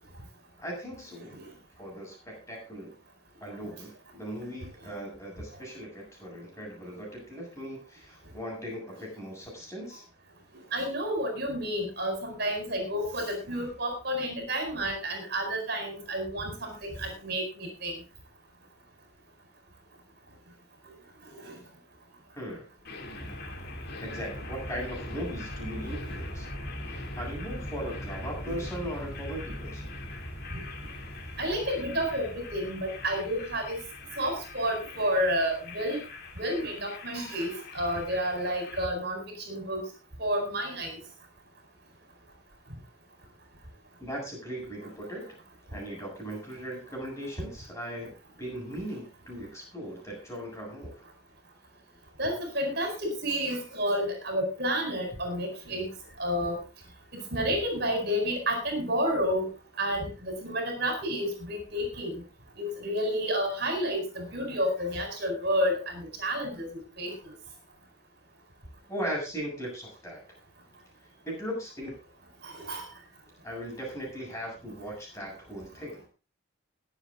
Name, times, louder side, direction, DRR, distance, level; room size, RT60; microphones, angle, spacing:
voice 1, 0.6-1.4 1.8-2.9 3.4-10.0 22.3-22.7 24.0-26.5 26.8-29.9 44.0-45.4 45.7-48.1 48.4-51.0 68.9-70.2 71.2-72.0 73.4-76.0, equal, 15° left, -2 dB, 7.6 m, -38 dB
voice 2, 10.7-18.0 21.4-21.6 28.5-28.6 30.5-30.6 31.4-33.8 34.2-36.0 36.4-39.9 40.2-41.0 52.2-55.9 56.2-56.6 57.1-59.5 59.8-62.2 62.6-66.7 67.0-67.1 72.4-72.9, equal, 50° right, 4 dB, 4.4 m, -30 dB
sound 1, 22.8-38.8, left 1 dB, 50° left, 2.9 m, -40 dB
21.5 x 7.6 x 3.7 m, 0.32 s
head